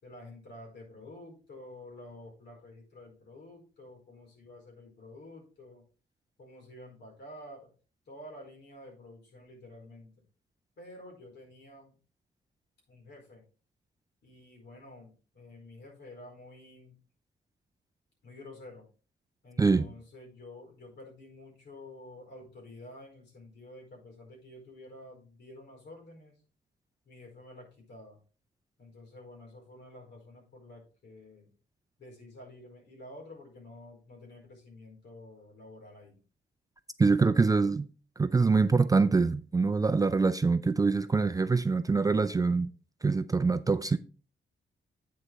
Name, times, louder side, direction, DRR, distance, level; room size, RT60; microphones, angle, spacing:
voice 1, 0.0-5.8 6.4-7.7 8.1-10.1 10.8-12.0 12.9-13.4 14.2-17.0 18.2-18.9 19.4-26.4 27.0-28.2 28.8-31.5 32.0-36.2, left 1 dB, 70° left, 4.6 m, -50 dB
voice 2, 37.0-37.9 38.2-42.7 43.0-44.0, right 4 dB, 20° right, 0.4 m, -24 dB
8.6 x 6.8 x 3.4 m
wide cardioid pair, 130°, 19 cm